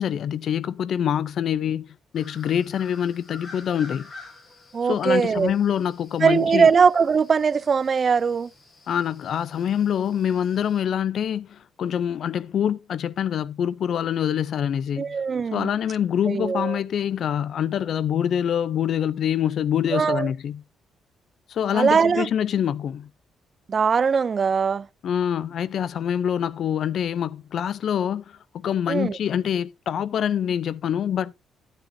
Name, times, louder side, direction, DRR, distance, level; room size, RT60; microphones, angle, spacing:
voice 1, 0.0-1.9 2.1-4.1 4.9-6.7 8.9-15.2 15.5-20.6 21.5-23.1 25.0-31.5, left 9 dB, 65° left, 0.5 m, -25 dB
sound 1, 2.1-10.8, left 3 dB, 40° left, 6.5 m, -48 dB
voice 2, 4.7-5.5 6.2-8.5 15.0-15.7 16.3-16.8 19.9-20.3 21.7-22.3 23.7-24.9 28.9-29.2, right 6 dB, 40° right, 0.5 m, -21 dB
12.5 x 9.1 x 2.7 m
cardioid pair, 90°, 0 cm